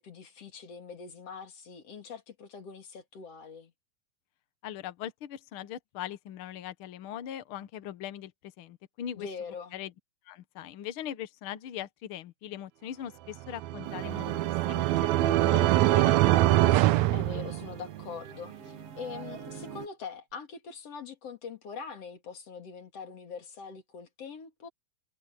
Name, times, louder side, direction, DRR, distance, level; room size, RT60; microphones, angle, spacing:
voice 1, 0.0-3.7 9.2-9.8 17.1-24.7, left 5 dB, 50° left, 3.3 m, -43 dB
voice 2, 4.6-8.3 8.6-9.3 9.7-9.9 10.3-14.3 14.7-15.1 15.4-16.5, left 11 dB, 80° left, 1.1 m, -40 dB
sound 1, 13.5-18.0, right 16 dB, 80° right, 1.6 m, -24 dB
sound 2, 13.8-19.9, right 8 dB, 50° right, 2.5 m, -41 dB
omnidirectional pair, 3.9 m